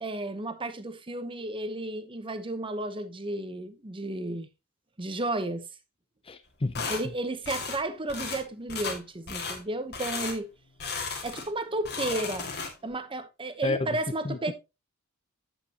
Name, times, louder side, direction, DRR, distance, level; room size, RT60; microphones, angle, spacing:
voice 1, 0.0-4.5 5.0-5.6 6.9-10.5 11.2-12.5 12.8-14.5, right 2 dB, 25° right, 0.9 m, -33 dB
voice 2, 6.3-6.9 13.6-13.8 14.2-14.5, left 3 dB, 25° left, 0.5 m, -30 dB
sound 1, 6.7-7.0 7.5-7.8 8.1-8.4 8.7-9.0 9.3-9.6 9.9-10.4 10.8-11.5 11.8-12.9, left 4 dB, 50° left, 2.1 m, -34 dB
8.5 x 8.4 x 2.9 m
head